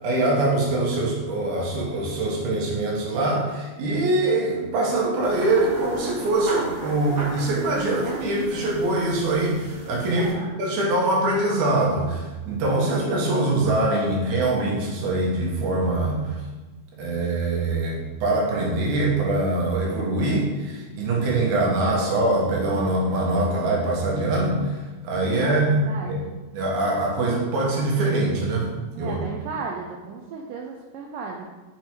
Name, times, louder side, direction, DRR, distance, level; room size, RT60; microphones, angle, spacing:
voice 1, 0.0-10.3 10.6-16.2 17.0-26.2 26.5-29.2, right 2 dB, 70° right, -2 dB, 2.6 m, -23 dB
sound 1, 5.2-10.3, right 1 dB, 50° right, 1.0 m, -36 dB
voice 2, 10.2-10.5 13.5-13.6 25.4-26.4 29.0-31.5, right 5 dB, 85° right, 1 dB, 2.2 m, -35 dB
6.0 x 4.5 x 4.5 m, 1.2 s
omnidirectional pair, 3.8 m